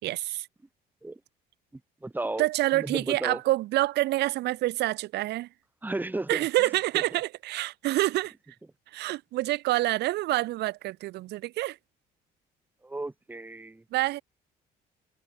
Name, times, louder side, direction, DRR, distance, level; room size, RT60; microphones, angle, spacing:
voice 1, 0.0-0.5 2.4-5.5 6.3-8.3 8.9-11.8 13.9-14.2, right 17 dB, 80° right, 3.7 m, -27 dB
voice 2, 2.0-2.4 2.7-3.4 5.8-6.4 12.8-13.8, right 2 dB, 10° right, 3.3 m, -33 dB
cardioid pair, 110°, 17 cm